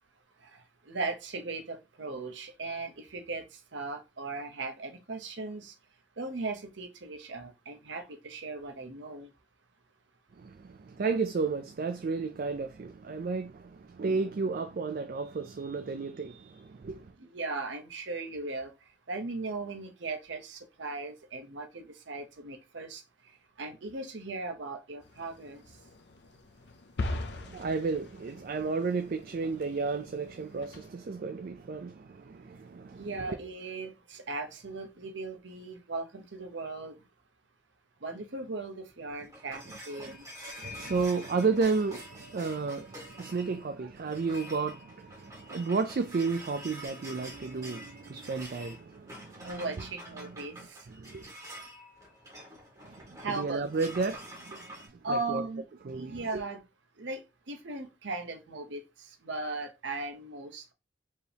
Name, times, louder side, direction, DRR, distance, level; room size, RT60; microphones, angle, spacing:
voice 1, 0.9-3.4 3.7-5.7 6.2-9.3 17.2-18.7 19.1-23.0 23.6-25.6 33.0-37.0 38.0-40.2 49.4-50.9 53.2-53.6 55.0-55.6 55.9-56.6 57.0-57.2 57.5-58.8 59.2-60.7, right 3 dB, 70° right, 0.8 m, -38 dB
voice 2, 10.4-17.1 27.3-33.3 39.9-40.2 40.4-49.7 50.2-51.2 52.8-54.2 54.5-54.7 55.1-55.4 55.8-56.4, right 4 dB, 50° right, 0.4 m, -33 dB
sound 1, 25.0-30.9, left 2 dB, 60° left, 0.6 m, -41 dB
sound 2, 38.9-54.9, equal, 20° right, 1.6 m, -47 dB
4.5 x 2.9 x 3.3 m
head